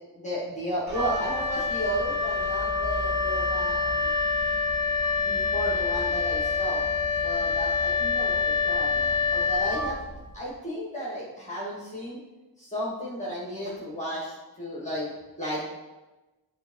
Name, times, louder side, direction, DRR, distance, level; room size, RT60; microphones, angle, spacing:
voice 1, 0.1-4.1 4.8-6.9 7.2-10.0 10.3-12.2 12.6-15.1 15.4-15.6, equal, 15° left, -7 dB, 2.4 m, -33 dB
Wind instrument woodwind instrument, 0.9-10.3, left 4 dB, 50° right, 2.0 m, -26 dB
8.9 x 3.7 x 4.9 m, 1.1 s
cardioid pair, 50°, 45 cm